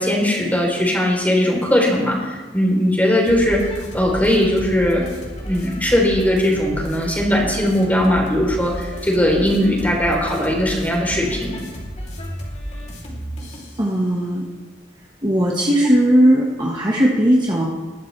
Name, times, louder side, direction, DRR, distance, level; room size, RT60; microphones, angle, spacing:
voice 1, 0.0-5.1 5.4-11.5, left 1 dB, 10° left, -1 dB, 3.6 m, -19 dB
sound 1, 3.3-13.8, equal, 35° left, 3.1 m, -33 dB
voice 2, 13.8-14.5 15.2-17.7, equal, 25° right, -3 dB, 1.4 m, -17 dB
21.0 x 12.5 x 3.3 m, 1.3 s
head